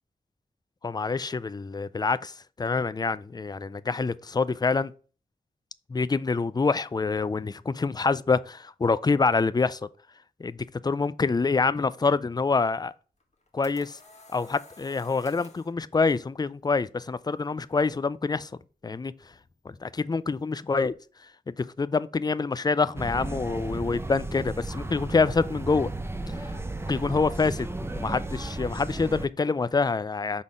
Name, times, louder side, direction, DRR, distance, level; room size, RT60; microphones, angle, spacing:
voice 1, 0.8-4.9 5.9-9.8 10.4-12.9 13.5-14.0 14.3-18.5 18.8-19.1 19.7-21.0 21.5-25.9 26.3-26.4 26.9-30.4, left 4 dB, 25° left, 0.3 m, -26 dB
sound 1, 13.2-15.7, left 2 dB, 45° left, 1.3 m, -51 dB
sound 2, 23.0-29.3, right 2 dB, 15° right, 0.6 m, -34 dB
5.6 x 4.0 x 4.9 m
wide cardioid pair, 75°, 17 cm